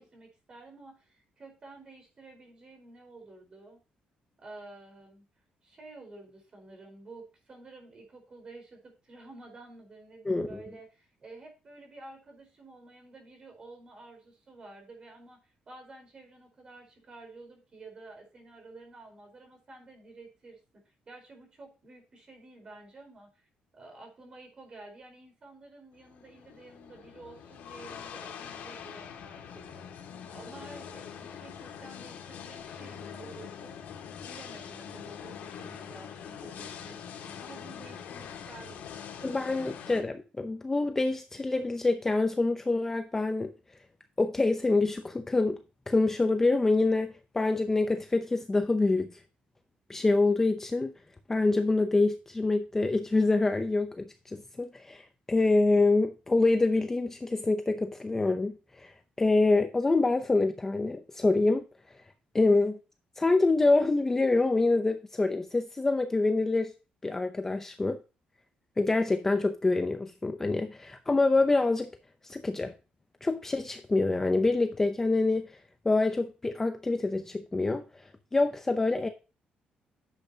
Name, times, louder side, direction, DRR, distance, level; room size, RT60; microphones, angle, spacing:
voice 1, 0.0-3.8 4.4-5.2 5.6-20.6 20.8-33.8 34.3-39.6, right 2 dB, 30° right, 4.4 m, -51 dB
voice 2, 10.3-10.6 39.2-43.5 44.2-45.6 45.9-49.2 49.9-50.9 51.3-58.9 59.2-61.6 62.3-62.8 63.2-66.7 67.0-68.0 68.8-71.9 72.2-72.7 73.2-79.1, left 3 dB, 15° left, 0.6 m, -26 dB
sound 1, 26.0-40.0, left 8 dB, 80° left, 2.2 m, -44 dB
10.5 x 7.8 x 2.8 m
cardioid pair, 165°, 3 cm